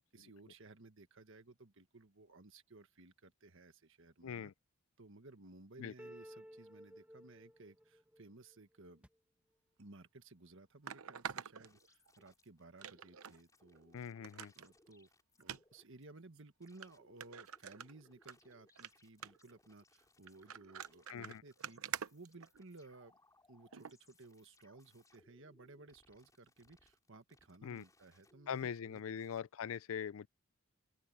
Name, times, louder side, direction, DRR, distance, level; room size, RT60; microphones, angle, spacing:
voice 1, 0.0-4.5 5.0-9.0 9.8-14.1 14.5-15.1 15.4-23.2 23.5-29.0, right 2 dB, 60° right, 1.6 m, -58 dB
voice 2, 4.2-4.5 5.8-5.9 13.9-14.5 21.1-21.4 27.6-27.8 28.5-30.3, left 7 dB, 70° left, 0.4 m, -42 dB
sound 1, 6.0-9.1, equal, 5° right, 1.3 m, -56 dB
sound 2, 9.8-9.9 10.9-12.3 12.8-13.4 13.7-13.8 14.2-14.7 15.4-15.6 16.3-16.4 16.8-16.9 17.2-18.3 18.7-18.9 19.2-19.5 20.3-22.9 23.7-23.9 24.5-24.6, right 8 dB, 85° right, 0.8 m, -46 dB
sound 3, 11.6-16.1 16.6-29.4, left 2 dB, 15° left, 4.9 m, -70 dB
open air
head